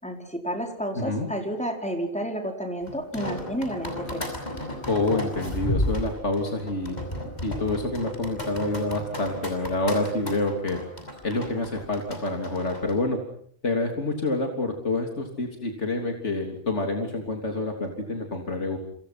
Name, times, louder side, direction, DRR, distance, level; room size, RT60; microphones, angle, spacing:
voice 1, 0.0-4.4, equal, 5° left, 3 dB, 4.7 m, -31 dB
voice 2, 1.0-1.3 4.9-10.8 11.2-13.2 13.6-18.8, left 2 dB, 85° left, 3 dB, 3.6 m, -27 dB
sound 1, 2.9-12.9, left 1 dB, 40° left, 6.6 m, -33 dB
29.0 x 27.0 x 6.0 m, 0.62 s
omnidirectional pair, 1.2 m